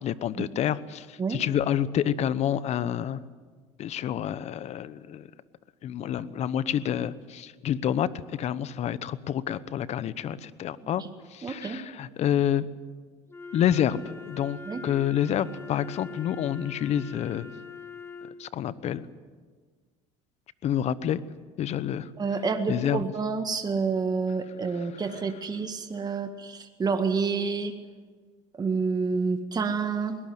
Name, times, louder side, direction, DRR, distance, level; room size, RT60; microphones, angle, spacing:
voice 1, 0.0-3.2 3.8-5.3 5.8-11.0 11.3-12.7 13.5-17.5 18.4-19.1 20.6-21.2 21.6-22.1 22.7-23.0, left 10 dB, 45° left, 17 dB, 1.0 m, -28 dB
voice 2, 11.4-11.8 14.7-14.8 22.2-27.7 28.6-30.2, right 4 dB, 25° right, 7 dB, 1.8 m, -28 dB
Wind instrument woodwind instrument, 13.3-18.4, left 5 dB, 15° left, 2.4 m, -42 dB
21.5 x 18.5 x 7.9 m, 1.5 s
supercardioid pair, 90°, 15 cm